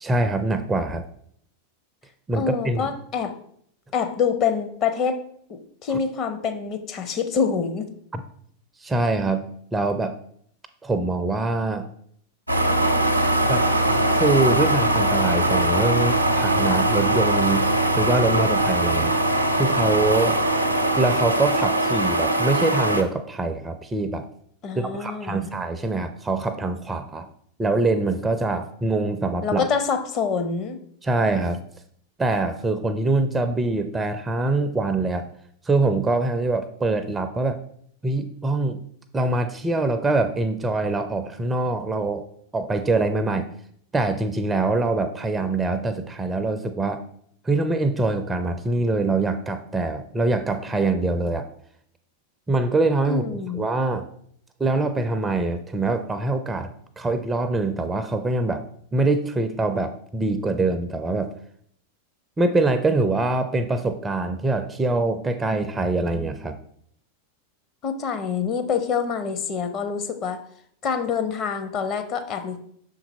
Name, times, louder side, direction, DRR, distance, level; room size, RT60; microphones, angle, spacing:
voice 1, 0.0-1.0 2.3-2.9 8.1-8.2 8.8-9.4 9.7-10.1 10.8-11.9 13.5-17.7 18.0-19.1 19.5-20.4 20.9-24.2 24.8-27.3 27.6-29.6 31.0-31.6 32.2-35.3 35.7-37.6 38.0-38.8 39.1-42.3 42.5-43.5 43.9-47.0 47.5-51.4 52.5-54.1 54.6-58.6 58.9-61.3 62.4-66.6, right 2 dB, 15° right, 9 dB, 0.4 m, -24 dB
voice 2, 2.3-3.3 3.9-5.2 5.5-7.9 24.6-25.5 29.4-30.8 53.0-53.7 67.8-70.4 70.8-72.6, left 6 dB, 35° left, 8 dB, 0.7 m, -26 dB
sound 1, 12.5-23.0, right 1 dB, 90° right, 0.6 m, -21 dB
6.0 x 4.0 x 4.1 m, 0.66 s
figure-of-eight pair, 90°, 0 cm